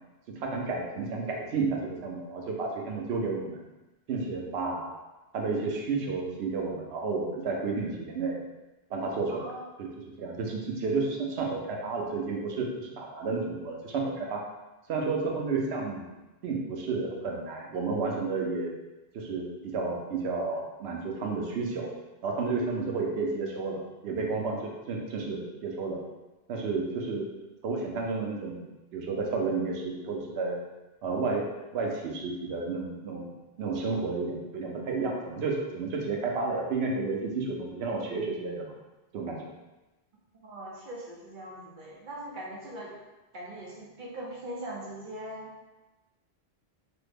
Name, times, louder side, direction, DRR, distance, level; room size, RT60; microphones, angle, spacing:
voice 1, 0.4-3.6 4.1-4.9 5.3-8.4 8.9-9.5 9.8-9.9 10.2-14.4 14.9-16.1 16.4-18.7 19.1-21.9 22.2-26.0 26.5-27.2 27.6-28.6 28.9-30.6 31.0-31.5 31.7-33.3 33.6-38.7 39.1-39.4, right 4 dB, 85° right, -1 dB, 0.9 m, -31 dB
voice 2, 9.3-9.6 40.3-42.9 43.3-45.5, right 1 dB, 55° right, -5 dB, 0.8 m, -41 dB
3.1 x 2.0 x 3.3 m, 1.1 s
omnidirectional pair, 1.1 m